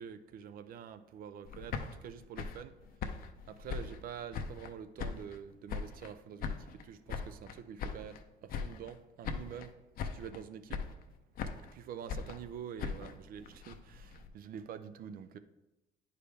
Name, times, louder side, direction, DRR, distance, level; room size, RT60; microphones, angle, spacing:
voice 1, 0.0-2.7 3.6-6.6 6.9-8.1 8.6-9.7 10.1-10.8 11.7-15.4, right 8 dB, 60° right, 11 dB, 0.5 m, -46 dB
sound 1, 1.4-4.7 5.0-6.1 6.4-8.2 8.5-9.0 9.2-9.7 10.0-10.4 10.7-11.7 12.1-14.3, left 6 dB, 60° left, 0.6 m, -40 dB
9.6 x 4.9 x 3.4 m, 0.99 s
cardioid pair, 110°, 17 cm